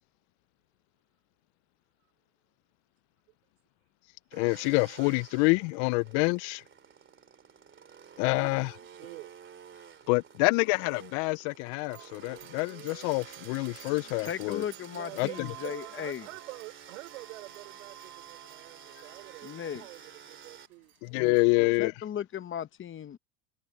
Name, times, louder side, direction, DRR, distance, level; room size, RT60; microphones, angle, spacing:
voice 1, 4.3-6.6 8.2-8.7 10.1-14.6 15.2-15.3 21.0-21.9, left 30 dB, 75° left, 0.5 m, -27 dB
sound 1, 4.3-20.7, right 7 dB, 30° right, 2.7 m, -51 dB
voice 2, 8.0-9.3 14.9-20.9, right 21 dB, 90° right, 5.5 m, -47 dB
sound 2, 11.9-21.5, right 18 dB, 65° right, 4.5 m, -52 dB
voice 3, 14.2-16.3 19.4-19.8 21.1-23.2, left 9 dB, 30° left, 1.0 m, -37 dB
supercardioid pair, 100°, 37 cm